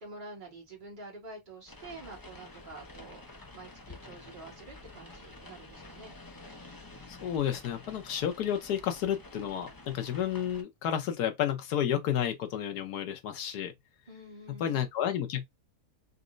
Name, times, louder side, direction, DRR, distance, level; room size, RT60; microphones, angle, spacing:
voice 1, 0.0-6.2 14.1-14.9, right 2 dB, 30° right, 1.9 m, -48 dB
sound 1, 1.7-10.6, left 2 dB, 30° left, 0.4 m, -49 dB
voice 2, 7.1-13.7 14.6-15.4, left 10 dB, 85° left, 1.4 m, -31 dB
4.2 x 3.1 x 2.5 m
omnidirectional pair, 1.6 m